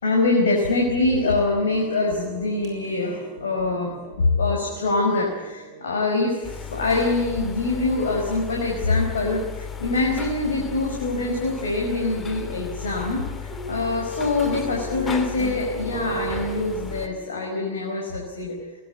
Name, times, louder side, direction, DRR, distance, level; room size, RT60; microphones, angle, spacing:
voice 1, 0.0-13.2 13.7-18.5, left 3 dB, 65° left, 0 dB, 5.0 m, -24 dB
sound 1, 1.4-9.5 13.5-18.1, right 4 dB, 40° right, 7.2 m, -39 dB
sound 2, 6.4-17.1, left 6 dB, 20° left, 2.3 m, -35 dB
21.5 x 19.5 x 8.4 m, 1.3 s
figure-of-eight pair, 90°, 0 cm